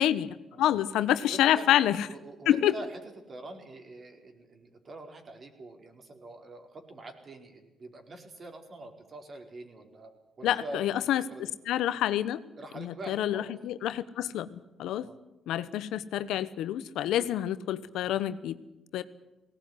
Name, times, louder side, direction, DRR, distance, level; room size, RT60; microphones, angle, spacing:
voice 1, 0.0-2.1 2.5-2.7 10.4-11.2 11.7-12.4 12.8-15.1 15.5-18.6 18.9-19.0, left 12 dB, 85° left, 14 dB, 1.0 m, -27 dB
voice 2, 1.2-1.6 2.1-3.0 3.3-10.1 10.4-11.0 11.3-11.4 12.5-13.5 15.0-15.2, right 2 dB, 40° right, 4 dB, 4.8 m, -44 dB
18.5 x 18.5 x 9.7 m, 0.99 s
cardioid pair, 90°, 0 cm